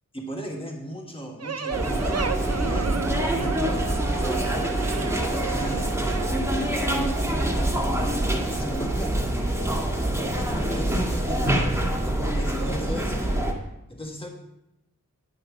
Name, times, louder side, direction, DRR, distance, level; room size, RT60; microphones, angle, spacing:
voice 1, 0.1-3.8 4.2-4.5 4.9-5.9 6.6-8.0 8.3-9.3 10.0-11.6 12.0-13.3 13.9-14.3, right 1 dB, 15° left, 1 dB, 1.5 m, -37 dB
sound 1, 1.4-6.3, right 5 dB, 50° right, 0.6 m, -34 dB
sound 2, 1.7-13.5, right 1 dB, 10° right, 1.9 m, -25 dB
10.5 x 5.5 x 5.7 m, 0.88 s
wide cardioid pair, 60°, 33 cm